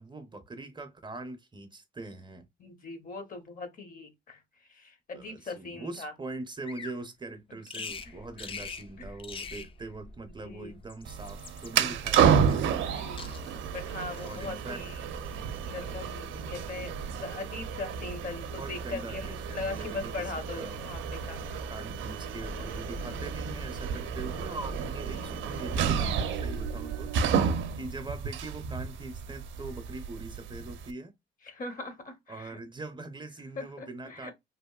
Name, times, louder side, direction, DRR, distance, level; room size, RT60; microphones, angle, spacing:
voice 1, 0.0-2.5 5.1-12.4 14.2-14.8 18.6-20.8 21.7-27.1 27.8-31.1 32.3-34.3, right 2 dB, 25° right, 0.5 m, -42 dB
voice 2, 2.6-6.1 8.0-8.5 9.0-9.1 10.4-10.7 12.8-13.3 13.7-15.0 15.6-21.4 23.0-23.2 25.1-25.3 31.4-32.6 33.5-34.3, left 3 dB, 45° left, 0.8 m, -40 dB
Bird vocalization bird call bird song, 6.6-7.0 7.7-8.1 8.4-8.9 9.2-9.7 10.7-11.7 12.5-12.9 13.2-13.7 14.1-14.5, left 5 dB, 25° left, 0.4 m, -42 dB
sound 1, 7.9-27.2, equal, 75° left, 1.1 m, -49 dB
sound 2, 11.0-30.9, right 7 dB, 75° right, 0.5 m, -31 dB
2.9 x 2.5 x 2.2 m
cardioid pair, 90°, 20 cm